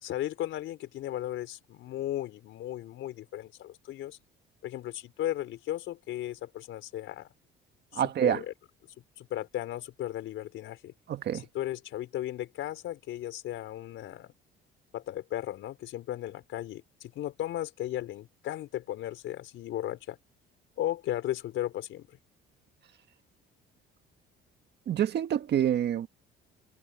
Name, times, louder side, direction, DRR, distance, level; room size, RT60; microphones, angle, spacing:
voice 1, 0.0-4.2 4.6-7.3 7.9-8.5 9.2-10.9 11.3-14.3 14.9-20.2 20.8-22.1, left 13 dB, 70° left, 4.6 m, -36 dB
voice 2, 7.9-8.4 11.1-11.4 24.9-26.1, right 10 dB, 55° right, 1.6 m, -27 dB
cardioid pair, 115°, 21 cm